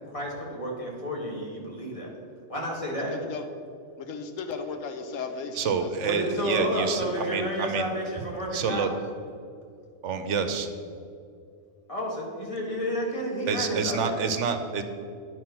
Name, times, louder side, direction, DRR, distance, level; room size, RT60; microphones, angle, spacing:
voice 1, 0.1-2.1 2.5-3.2 6.0-8.9 11.9-14.2, equal, 25° left, -3 dB, 1.8 m, -31 dB
voice 2, 3.1-3.4 4.0-6.1, left 5 dB, 90° left, 7 dB, 1.2 m, -36 dB
voice 3, 5.5-7.9 8.5-8.9 10.0-10.7 13.5-14.8, right 5 dB, 70° right, 8 dB, 0.9 m, -28 dB
9.5 x 4.9 x 5.8 m, 2.4 s
omnidirectional pair, 1.3 m